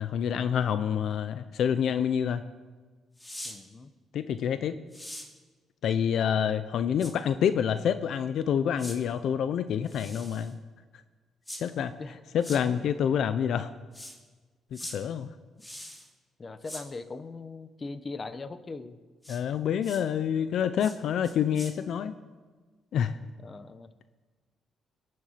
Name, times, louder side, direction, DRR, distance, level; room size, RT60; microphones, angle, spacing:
voice 1, 0.0-2.4 4.1-4.8 5.8-10.5 11.6-11.9 12.3-13.7 14.7-15.3 19.3-22.1 22.9-23.2, left 8 dB, 70° left, 12 dB, 0.6 m, -27 dB
sound 1, 3.2-3.6 4.9-5.3 7.0-7.1 8.8-9.0 9.9-10.5 11.5-11.6 12.4-12.6 13.9-14.2 14.7-15.0 15.6-16.1 16.6-16.8 19.2-19.4 19.8-20.0 20.8-21.0 21.2-21.7, left 1 dB, 10° left, 2.6 m, -42 dB
voice 2, 3.4-3.9 11.8-12.2 12.6-12.9 16.4-19.0 22.1-22.2 23.4-23.9, left 3 dB, 35° left, 12 dB, 1.0 m, -41 dB
21.5 x 7.8 x 5.8 m, 1.4 s
cardioid pair, 90°, 0 cm